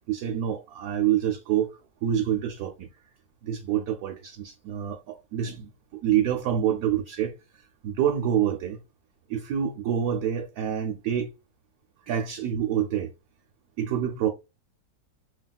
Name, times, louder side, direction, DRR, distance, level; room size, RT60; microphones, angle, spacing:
voice 1, 0.1-1.7 2.0-2.7 3.4-5.7 6.0-7.3 7.8-8.8 9.3-11.3 12.1-13.1 13.8-14.3, right 10 dB, 70° right, 1.0 m, -26 dB
3.4 x 2.2 x 2.3 m
omnidirectional pair, 1.8 m